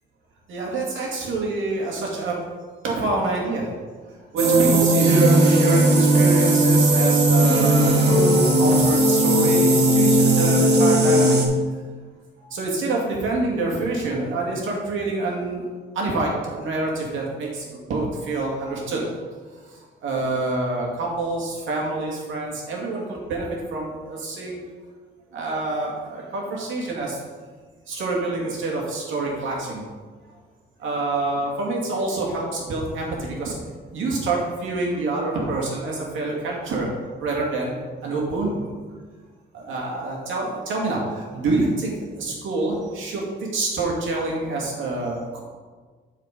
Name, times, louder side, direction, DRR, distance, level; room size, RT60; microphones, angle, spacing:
voice 1, 0.5-2.3 2.8-4.0 4.3-11.4 12.5-15.6 15.9-19.2 19.5-24.6 25.3-27.2 27.9-29.8 30.8-36.9 37.2-38.5 39.5-41.9 42.2-45.4, right 2 dB, 80° right, -2 dB, 2.4 m, -27 dB
sound 1, 4.4-11.5, right 1 dB, 55° right, 1.5 m, -17 dB
7.9 x 4.9 x 5.3 m, 1.5 s
cardioid pair, 90°, 20 cm